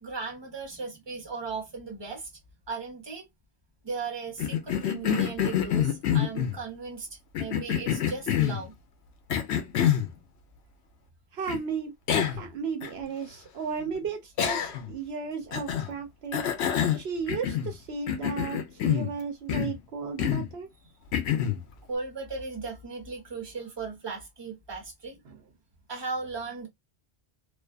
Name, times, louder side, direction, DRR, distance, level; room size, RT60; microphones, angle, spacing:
voice 1, 0.0-2.3 2.7-3.3 3.8-7.1 7.4-8.8 16.7-17.0 21.9-25.2 25.9-26.7, right 4 dB, 25° right, 1.0 m, -37 dB
Cough, 4.4-6.6 7.3-8.6 9.3-10.1 11.5-11.6 12.1-12.5 12.8-12.9 14.4-14.9 15.5-15.9 16.3-17.8 18.1-19.1 19.5-19.8 20.2-20.5 21.1-21.6, left 9 dB, 85° left, 0.9 m, -27 dB
voice 2, 11.3-11.9 12.3-16.4 16.9-18.6 18.8-20.7 21.3-21.4 25.3-25.4, right 5 dB, 70° right, 0.9 m, -34 dB
2.5 x 2.3 x 2.2 m
omnidirectional pair, 1.1 m